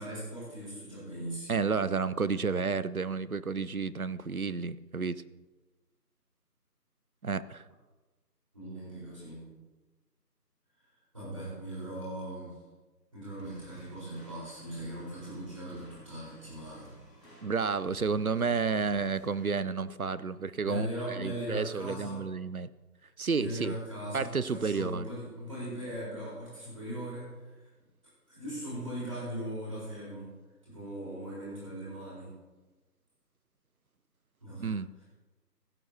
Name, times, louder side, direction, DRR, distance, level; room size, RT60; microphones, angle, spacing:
voice 1, 0.0-1.6 8.5-9.4 11.1-12.6 13.1-16.9 20.6-22.2 23.4-27.7 28.3-30.3 30.6-32.4 34.4-34.8, right 1 dB, 20° right, -8 dB, 4.1 m, -39 dB
voice 2, 1.5-5.2 7.2-7.6 17.4-22.7 23.2-23.8 24.1-25.1 34.6-34.9, right 5 dB, 60° right, 16 dB, 0.6 m, -31 dB
sound 1, 13.4-19.5, right 1 dB, 5° left, 2.8 m, -54 dB
16.0 x 14.0 x 2.8 m, 1.2 s
figure-of-eight pair, 175°, 49 cm